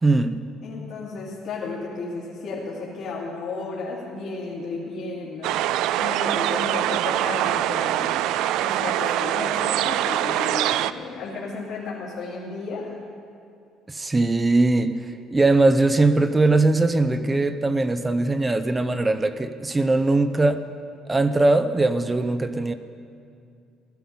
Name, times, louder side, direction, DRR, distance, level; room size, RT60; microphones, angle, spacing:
voice 1, 0.0-0.4 13.9-15.0 15.3-20.6 21.1-22.7, right 2 dB, 15° right, 10 dB, 0.5 m, -20 dB
voice 2, 0.6-5.6 6.0-8.3 8.6-12.9, left 3 dB, 65° left, -6 dB, 2.3 m, -33 dB
sound 1, 5.4-10.9, right 12 dB, 75° right, 0.4 m, -24 dB
16.0 x 12.5 x 5.4 m, 2.4 s
cardioid pair, 145°, 0 cm